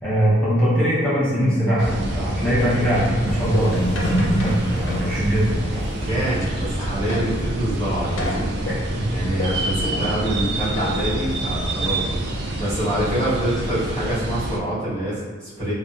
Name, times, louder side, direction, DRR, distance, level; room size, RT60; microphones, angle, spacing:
voice 1, 0.0-5.8 8.7-9.0, equal, 5° left, -10 dB, 0.8 m, -21 dB
sound 1, 1.4-7.5 7.8-7.9 8.2-11.9 12.5-12.6 12.8-12.9 13.6-13.9 14.1-14.4, equal, 70° left, 0.5 m, -29 dB
sound 2, 1.8-14.6, right 1 dB, 55° right, 0.3 m, -27 dB
Boom, 3.2-8.8, equal, 80° right, 1.2 m, -34 dB
voice 2, 6.1-8.8 9.1-15.7, right 1 dB, 35° right, -15 dB, 1.1 m, -26 dB
2.7 x 2.1 x 2.4 m, 1.5 s
head